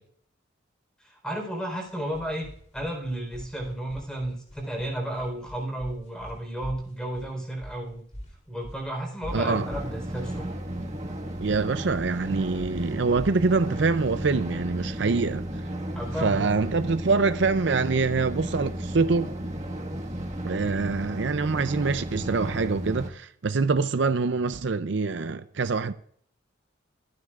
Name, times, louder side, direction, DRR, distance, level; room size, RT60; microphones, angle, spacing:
voice 1, 1.0-8.0 8.5-10.5 15.9-16.5, right 1 dB, 5° left, 4.2 m, -33 dB
sound 1, 1.8-15.0, equal, 35° left, 3.2 m, -44 dB
sound 2, 9.3-23.1, right 1 dB, 35° right, 1.7 m, -34 dB
voice 2, 9.3-9.7 11.4-15.5 16.2-19.3 20.5-25.9, right 4 dB, 65° right, 0.5 m, -25 dB
24.5 x 9.6 x 2.5 m
head